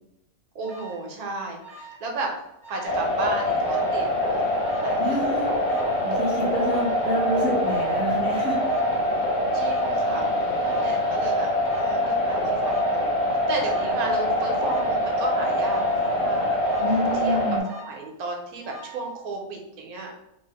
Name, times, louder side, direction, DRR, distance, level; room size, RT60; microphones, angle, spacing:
voice 1, 0.5-2.3 2.7-5.5 9.5-10.3 10.5-11.5 11.7-13.2 13.5-16.6 17.2-17.4 17.9-20.1, right 2 dB, 85° right, 1 dB, 1.1 m, -34 dB
Alarm, 0.6-1.1 1.6-2.1 2.4-3.1 3.6-4.0 4.6-5.1 5.6-6.1 6.6-7.1 7.6-8.1 8.6-9.1 9.6-10.1 10.6-11.1 11.6-12.1 12.6-13.1 13.6-14.1 14.6-15.1 15.6-16.1 16.6-17.1 17.6-18.1 18.6-19.1, right 2 dB, 15° left, 0.6 m, -44 dB
sound 1, 2.9-17.6, equal, 75° left, 0.4 m, -24 dB
voice 2, 5.0-8.6 16.8-17.6, equal, 45° left, -7 dB, 1.1 m, -28 dB
3.1 x 2.0 x 2.8 m, 0.86 s
omnidirectional pair, 1.5 m